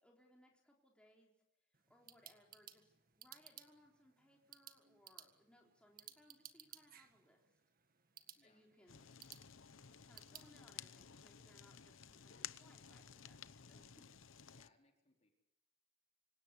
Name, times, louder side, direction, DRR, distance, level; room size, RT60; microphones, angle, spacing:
voice 1, 0.0-1.3 1.9-7.5 8.4-9.1 9.8-14.1, left 1 dB, 5° left, -1 dB, 4.0 m, -68 dB
sound 1, 1.7-10.5, right 10 dB, 45° right, 1.8 m, -60 dB
voice 2, 8.3-9.4 14.5-15.3, left 2 dB, 35° left, 2 dB, 4.5 m, -74 dB
Fire, 8.9-14.7, left 9 dB, 85° left, 0.9 m, -55 dB
26.5 x 17.5 x 8.4 m, 0.86 s
head